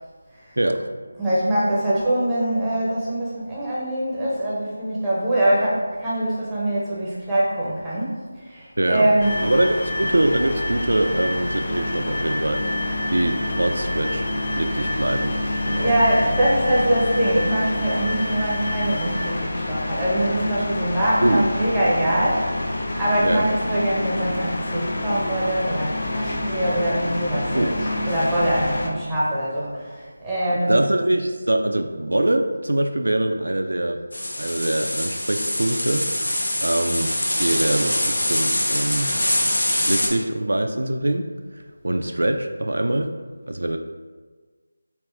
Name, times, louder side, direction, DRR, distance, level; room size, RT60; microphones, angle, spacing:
voice 1, 0.6-0.9 8.8-9.1 9.4-14.2 14.5-15.4 15.7-15.9 21.2-21.5 23.2-23.5 27.5-27.7 30.7-34.0 34.4-36.1 36.6-39.1 39.9-41.3 41.5-43.1 43.5-43.8, right 1 dB, 85° right, 5 dB, 0.3 m, -23 dB
voice 2, 1.2-9.3 15.7-22.5 22.9-27.8 28.1-30.7, right 1 dB, 5° right, -9 dB, 0.7 m, -23 dB
sound 1, 9.2-28.9, left 1 dB, 50° left, 0.5 m, -28 dB
sound 2, 9.2-19.3, left 1 dB, 35° left, 0.9 m, -32 dB
sound 3, 34.1-40.1, left 1 dB, 90° left, 0.8 m, -24 dB
3.5 x 2.5 x 4.4 m, 1.4 s
figure-of-eight pair, 170°, 0 cm